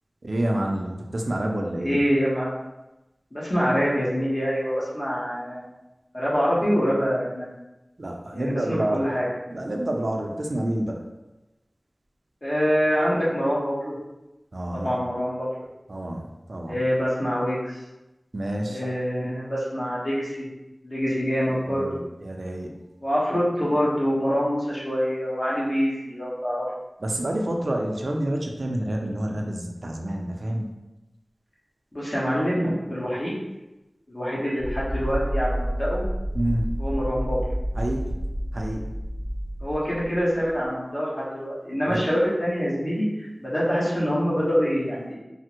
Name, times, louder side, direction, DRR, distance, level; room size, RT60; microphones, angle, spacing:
voice 1, 0.2-2.0 8.0-9.0 9.5-11.0 14.5-14.9 15.9-16.8 18.3-18.8 21.6-22.7 27.0-30.7 36.3-36.7 37.8-38.1 38.5-38.9 41.9-42.0, right 1 dB, 75° right, 1 dB, 0.4 m, -28 dB
voice 2, 1.8-2.5 3.3-5.7 6.1-7.5 8.3-9.3 12.4-14.0 14.7-15.7 16.7-17.8 18.7-20.5 20.8-21.9 23.0-26.6 31.9-33.4 34.1-36.0 36.8-37.4 39.6-45.1, equal, 50° left, -8 dB, 1.1 m, -25 dB
sound 1, 34.6-40.7, equal, 10° left, 0.8 m, -29 dB
3.3 x 2.0 x 2.9 m, 1.0 s
wide cardioid pair, 55°, 0 cm